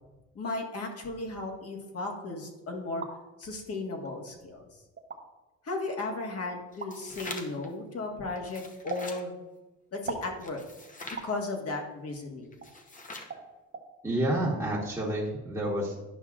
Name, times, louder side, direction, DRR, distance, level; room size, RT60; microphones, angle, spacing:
voice 1, 0.3-3.0 3.4-4.7 5.6-9.4 9.9-10.6 11.2-12.7, left 2 dB, 50° left, 0 dB, 1.6 m, -35 dB
sound 1, 2.7-3.2 4.1-4.2 5.0-5.2 6.8-6.9 8.9-9.1 10.1-10.3 11.2-11.4 12.6-12.7 13.3-13.5 13.7-13.9, right 4 dB, 35° right, 0.9 m, -38 dB
sound 2, 6.7-7.7 8.4-9.2 10.4-11.3 12.5-13.4, left 2 dB, 25° left, 0.9 m, -43 dB
voice 2, 14.0-16.0, right 1 dB, 10° right, -7 dB, 1.4 m, -29 dB
11.0 x 5.6 x 2.5 m, 1.1 s
cardioid pair, 90°, 30 cm